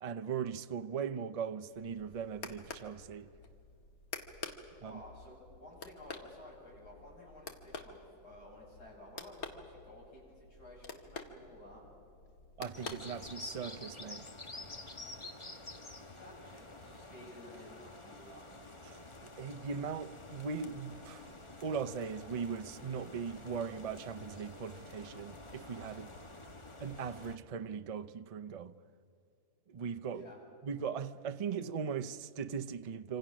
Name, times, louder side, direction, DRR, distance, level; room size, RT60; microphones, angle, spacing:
voice 1, 0.0-3.3 4.8-5.0 12.6-14.3 18.9-19.0 19.4-21.2 21.6-26.1 26.8-28.7 29.7-30.2 30.6-33.2, right 6 dB, 80° right, 0.3 m, -39 dB
sound 1, 1.7-13.7, left 4 dB, 60° left, 2.0 m, -49 dB
voice 2, 4.8-11.8 16.0-18.5 30.1-30.4, left 1 dB, 80° left, 8.3 m, -53 dB
sound 2, 12.7-27.4, left 2 dB, 20° left, 1.3 m, -49 dB
27.0 x 26.5 x 6.3 m
omnidirectional pair, 1.7 m